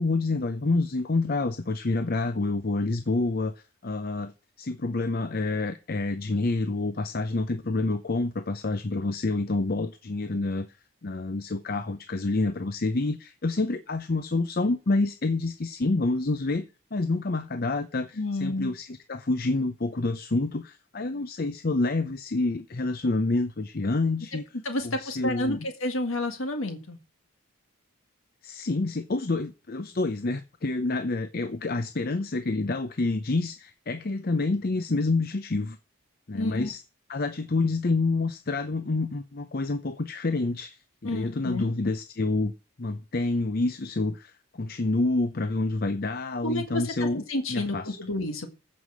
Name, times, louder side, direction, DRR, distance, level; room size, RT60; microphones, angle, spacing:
voice 1, 0.0-3.5 3.8-4.3 4.6-10.7 11.0-16.6 16.9-24.5 24.8-25.7 28.4-35.8 36.3-36.8 37.1-42.5 42.8-47.2 47.5-48.0, left 2 dB, 45° left, 0.7 m, -28 dB
voice 2, 18.2-18.7 24.6-27.0 36.3-36.7 41.0-41.7 46.4-48.5, left 1 dB, 70° left, 1.7 m, -30 dB
14.5 x 5.6 x 6.2 m
head